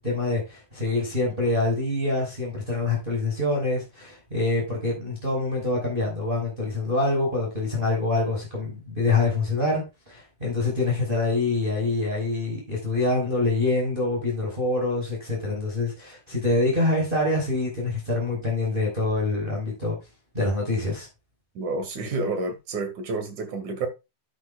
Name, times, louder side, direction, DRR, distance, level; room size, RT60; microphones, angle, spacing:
voice 1, 0.0-20.0 20.3-21.1, left 2 dB, 15° right, 5.4 m, -25 dB
voice 2, 21.6-23.9, right 3 dB, 75° right, 3.7 m, -29 dB
12.5 x 9.7 x 2.4 m
omnidirectional pair, 3.4 m